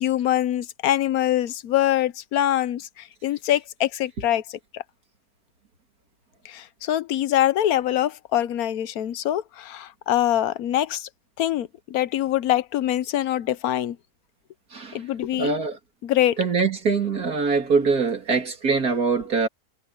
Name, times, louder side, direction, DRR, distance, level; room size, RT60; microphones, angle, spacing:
voice 1, 0.0-4.8 6.4-11.1 11.4-14.0 14.9-15.5 16.0-16.4, left 12 dB, 80° left, 1.2 m, -24 dB
voice 2, 15.4-15.8 16.4-19.5, right 4 dB, 85° right, 3.4 m, -23 dB
omnidirectional pair, 1.6 m